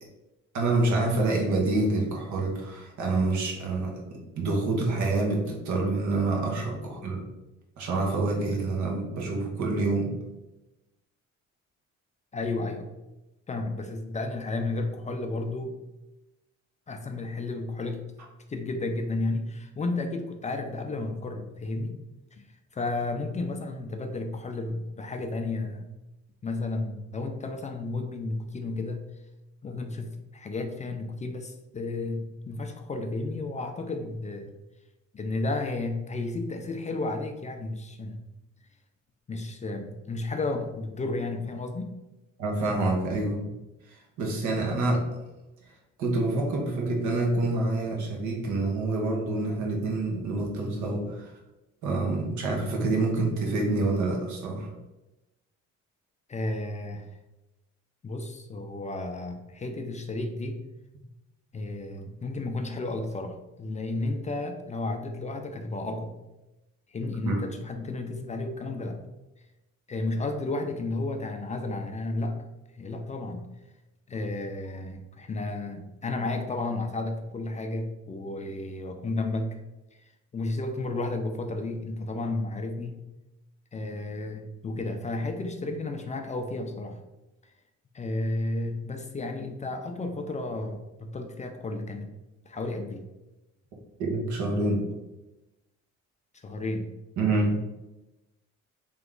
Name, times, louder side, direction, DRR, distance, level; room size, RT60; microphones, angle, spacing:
voice 1, 0.5-4.0 4.4-7.2 7.8-10.2 42.4-43.5 43.9-45.0 46.0-51.3 51.8-54.7 67.2-67.4 94.0-94.9 97.2-97.6, right 2 dB, 75° right, 0 dB, 1.2 m, -27 dB
voice 2, 12.3-12.9 13.5-15.8 16.9-18.1 18.5-22.0 22.3-22.5 22.7-25.9 26.4-29.0 29.6-34.5 35.1-38.2 39.3-41.9 56.3-57.1 58.0-60.6 61.5-66.1 66.9-69.0 69.9-72.4 72.7-73.5 74.1-79.6 80.0-83.0 83.7-87.0 87.9-92.1 92.5-93.1 96.3-96.9, left 2 dB, 25° left, 5 dB, 0.4 m, -32 dB
3.4 x 3.0 x 3.7 m, 1.0 s
cardioid pair, 105°, 29 cm